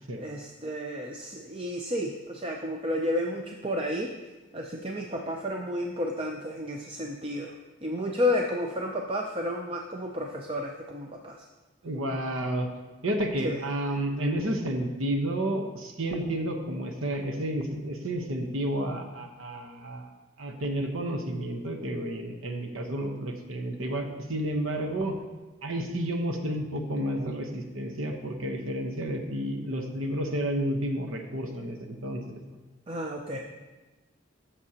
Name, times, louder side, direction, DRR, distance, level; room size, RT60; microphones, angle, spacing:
voice 1, 0.2-4.1 4.5-7.5 7.8-11.4 13.4-13.7 32.9-33.4, left 1 dB, 25° right, 1 dB, 0.5 m, -31 dB
voice 2, 11.8-12.7 13.0-20.1 20.4-25.2 25.6-32.4 33.3-33.4, right 1 dB, 80° right, 4 dB, 1.0 m, -31 dB
15.5 x 7.2 x 2.9 m, 1.2 s
head